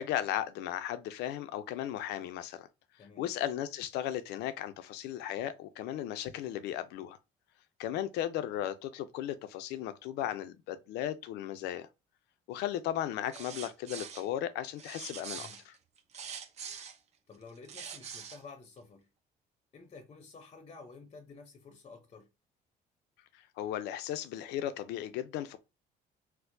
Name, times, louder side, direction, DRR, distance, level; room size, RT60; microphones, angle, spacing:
voice 1, 0.0-2.7 3.2-7.2 7.8-11.9 12.5-15.8 23.3-25.6, left 11 dB, 85° left, 0.5 m, -36 dB
sound 1, 13.2-14.3 14.8-17.0 17.5-18.4, right 7 dB, 40° right, 0.6 m, -44 dB
voice 2, 17.3-19.1 19.7-22.3, left 4 dB, 35° left, 0.6 m, -51 dB
4.4 x 2.0 x 2.6 m
cardioid pair, 110°, 17 cm